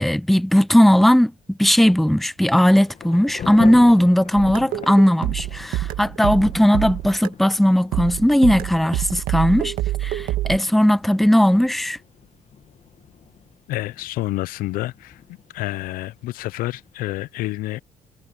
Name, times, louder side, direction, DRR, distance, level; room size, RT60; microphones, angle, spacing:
voice 1, 0.0-9.7 10.0-12.0, equal, ahead, 0.6 m, -17 dB
Thunder / Rain, 2.5-16.9, left 8 dB, 50° left, 2.3 m, -41 dB
sound 1, 4.4-7.5 7.9-10.6, right 15 dB, 75° right, 1.7 m, -26 dB
voice 2, 13.7-15.2 15.5-17.8, left 17 dB, 75° left, 0.8 m, -28 dB
hypercardioid pair, 60°, 15 cm